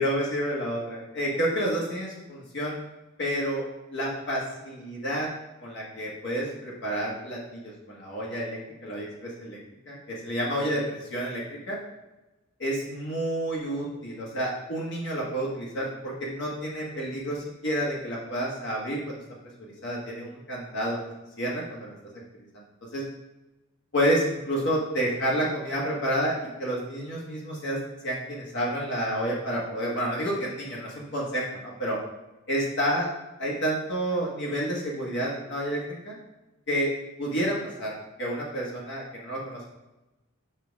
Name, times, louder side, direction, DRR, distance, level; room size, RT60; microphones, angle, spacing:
voice 1, 0.0-2.7 3.2-3.6 3.9-5.3 5.6-9.6 9.9-11.8 12.6-19.2 19.6-21.0 21.4-21.9 22.4-22.5 22.9-23.0 23.9-27.8 28.0-32.0 32.5-33.1 33.4-36.2 36.7-36.9 37.2-39.7, equal, 55° left, -4 dB, 1.5 m, -29 dB
7.3 x 5.3 x 3.5 m, 1.0 s
head